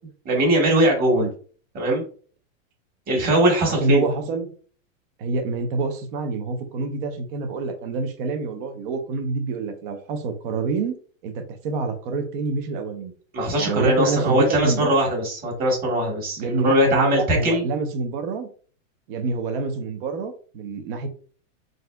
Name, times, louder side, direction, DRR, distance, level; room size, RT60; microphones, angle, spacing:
voice 1, 0.2-1.2 1.7-2.0 3.1-4.0 13.3-17.6, right 1 dB, 20° right, -1 dB, 1.6 m, -20 dB
voice 2, 3.6-4.5 5.2-11.0 11.2-13.1 13.6-14.9 16.4-18.5 19.1-21.1, right 3 dB, 40° right, 6 dB, 0.9 m, -27 dB
4.0 x 3.8 x 2.3 m, 0.42 s
supercardioid pair, 155°, 40 cm